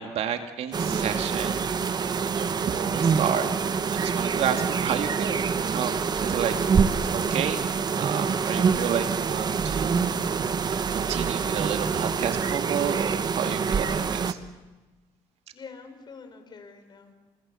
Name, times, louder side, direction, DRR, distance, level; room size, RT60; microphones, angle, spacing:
voice 1, 0.0-1.7 2.2-3.5 3.9-6.7 7.1-7.6 8.0-10.0 10.7-14.4, right 8 dB, 65° right, 7 dB, 2.2 m, -31 dB
sound 1, 0.7-14.3, right 6 dB, 35° right, 1.3 m, -26 dB
voice 2, 15.5-17.1, left 5 dB, 40° left, 7 dB, 5.3 m, -45 dB
29.5 x 26.5 x 7.1 m, 1.1 s
cardioid pair, 95°, 12 cm